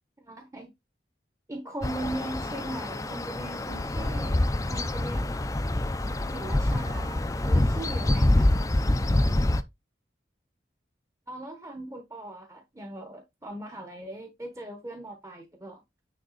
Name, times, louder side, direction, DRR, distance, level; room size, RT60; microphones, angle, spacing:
voice 1, 0.2-0.7 1.5-5.4 6.3-8.5 11.3-15.8, right 1 dB, 15° right, 1.0 m, -39 dB
sound 1, 1.8-9.6, left 1 dB, 20° left, 0.5 m, -26 dB
9.3 x 3.6 x 4.0 m
head